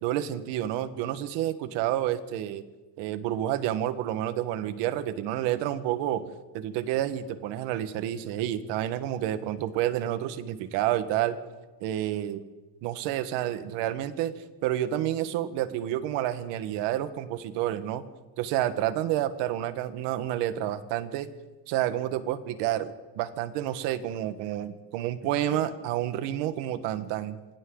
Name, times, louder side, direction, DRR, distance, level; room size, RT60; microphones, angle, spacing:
voice 1, 0.0-2.6 3.0-6.2 6.5-11.4 11.8-12.4 12.8-14.3 14.6-18.0 18.4-21.3 21.7-27.4, right 12 dB, 70° right, 10 dB, 1.7 m, -29 dB
27.0 x 24.0 x 4.0 m, 1.2 s
cardioid pair, 150°, 43 cm